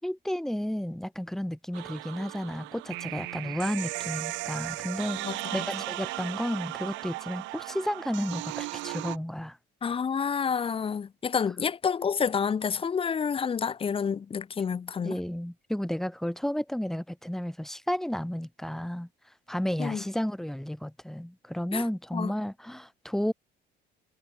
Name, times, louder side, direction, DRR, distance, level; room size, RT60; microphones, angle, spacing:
voice 1, 0.0-9.6 15.0-19.1 19.5-23.3, equal, ahead, 7.0 m, -32 dB
sound 1, 1.7-9.2, right 22 dB, 85° right, 3.9 m, -36 dB
voice 2, 5.2-5.6 9.8-15.2 19.8-20.0 21.7-21.8 22.1-22.3, left 6 dB, 30° left, 3.7 m, -29 dB
cardioid pair, 135°, 19 cm